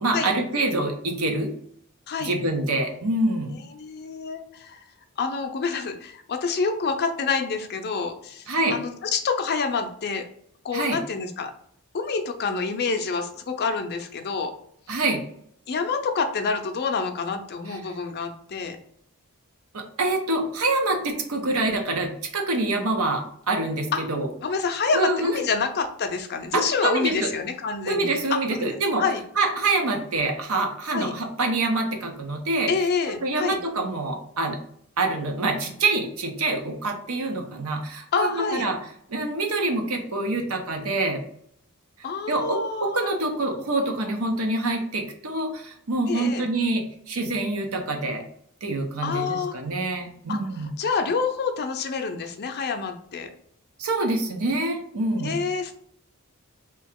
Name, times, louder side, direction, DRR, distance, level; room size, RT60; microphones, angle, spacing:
voice 1, 0.0-1.5 2.2-3.6 8.5-8.8 10.7-11.0 14.9-15.2 17.7-17.8 19.7-24.3 24.9-25.3 26.5-27.3 27.9-29.0 29.4-32.7 33.2-34.6 35.0-38.8 39.1-41.2 42.3-48.2 48.6-50.7 53.8-55.4, right 2 dB, 70° right, 4 dB, 0.7 m, -26 dB
voice 2, 3.7-4.8 5.2-10.3 10.6-11.5 11.9-14.5 15.7-18.8 23.9-24.0 24.4-29.2 30.9-31.1 32.7-33.6 38.1-38.7 42.0-43.2 46.1-46.5 49.0-49.6 50.3-50.4 50.8-53.3 55.2-55.8, left 5 dB, 50° left, 6 dB, 0.5 m, -27 dB
3.0 x 2.8 x 3.5 m, 0.66 s
head